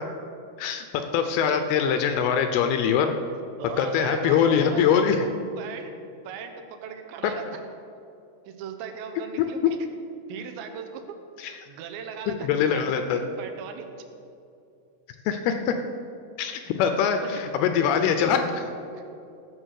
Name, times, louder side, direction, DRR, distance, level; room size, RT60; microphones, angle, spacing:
voice 1, 0.6-3.1 3.8-5.3 7.2-7.3 9.6-9.7 11.4-11.5 12.3-13.2 15.3-15.8 16.4-18.6, left 7 dB, 80° left, 7 dB, 2.3 m, -23 dB
voice 2, 3.6-5.1 5.6-5.9 6.2-7.6 8.5-9.6 10.3-11.0 11.7-13.9 17.2-17.3 18.9-19.0, right 7 dB, 85° right, 5 dB, 3.3 m, -38 dB
15.5 x 6.5 x 6.4 m, 2.6 s
omnidirectional pair, 5.0 m